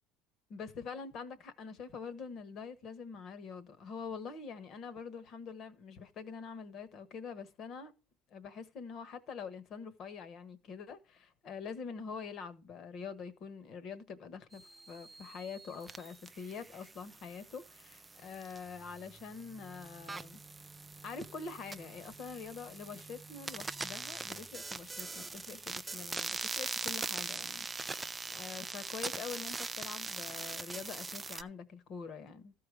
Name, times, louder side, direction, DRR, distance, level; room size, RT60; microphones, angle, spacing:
voice 1, 0.5-7.9 8.3-20.4 21.0-32.5, left 5 dB, 35° left, 1.2 m, -45 dB
sound 1, 14.5-31.4, right 3 dB, 10° right, 0.4 m, -42 dB
14.0 x 4.8 x 4.9 m
cardioid pair, 170°, 0 cm